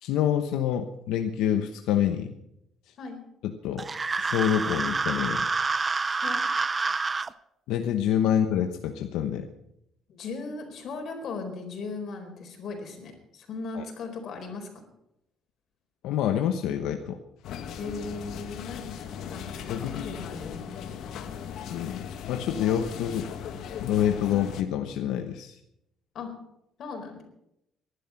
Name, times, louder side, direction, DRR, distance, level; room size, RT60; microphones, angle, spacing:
voice 1, 0.0-2.3 2.9-3.0 3.4-3.8 4.2-5.5 7.7-9.5 13.7-13.8 16.0-17.2 19.7-20.1 21.7-23.3 23.8-25.6, left 10 dB, 90° left, 6 dB, 1.0 m, -27 dB
sound 1, 3.8-7.3, right 4 dB, 25° right, 0.5 m, -28 dB
voice 2, 10.1-14.9 17.8-20.7 26.1-26.3 26.8-27.2, left 4 dB, 55° left, 4 dB, 4.5 m, -38 dB
sound 2, 17.4-24.6, left 8 dB, 70° left, 1.6 m, -38 dB
19.5 x 11.5 x 5.9 m, 0.82 s
cardioid pair, 130°, 0 cm